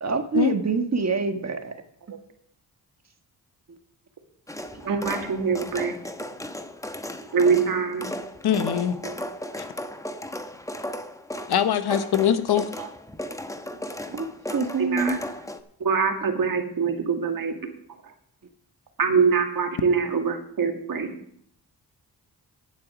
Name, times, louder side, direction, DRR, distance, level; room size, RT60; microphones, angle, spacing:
voice 1, 0.0-1.8 4.8-4.9 7.2-7.3 14.1-15.2, right 4 dB, 40° right, 7 dB, 1.4 m, -26 dB
sound 1, 4.5-15.6, left 1 dB, 10° left, 0.9 m, -36 dB
voice 2, 4.9-5.9 7.3-8.1 9.0-9.2 12.8-12.9 14.5-15.2 15.8-17.6 19.0-21.1, right 5 dB, 55° right, 4 dB, 2.1 m, -24 dB
voice 3, 8.4-9.0 11.5-12.7, left 9 dB, 75° left, 11 dB, 1.1 m, -22 dB
9.8 x 8.5 x 6.0 m, 0.67 s
cardioid pair, 65°, 39 cm